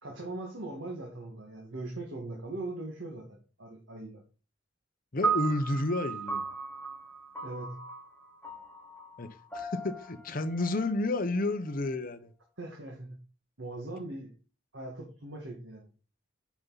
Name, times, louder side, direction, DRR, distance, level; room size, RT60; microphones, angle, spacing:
voice 1, 0.0-4.2 7.4-7.8 12.6-13.2 13.6-14.3 14.7-15.9, right 2 dB, 85° right, 1.8 m, -40 dB
voice 2, 5.1-6.4 9.2-9.3 9.5-12.3, left 2 dB, 50° left, 1.0 m, -31 dB
sound 1, 5.2-11.7, right 5 dB, 10° left, 1.6 m, -36 dB
8.7 x 5.5 x 4.0 m
head